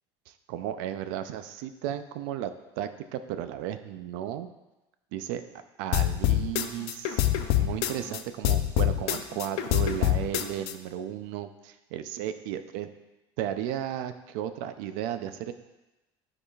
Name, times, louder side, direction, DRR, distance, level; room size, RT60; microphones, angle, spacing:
voice 1, 0.3-4.5 5.1-5.4 5.8-7.2 7.6-12.9 13.4-15.5, right 11 dB, 90° right, 10 dB, 0.5 m, -34 dB
sound 1, 5.9-8.2 8.4-10.7, left 13 dB, 80° left, 0.5 m, -25 dB
9.9 x 4.8 x 2.4 m, 1.0 s
cardioid pair, 130°, 11 cm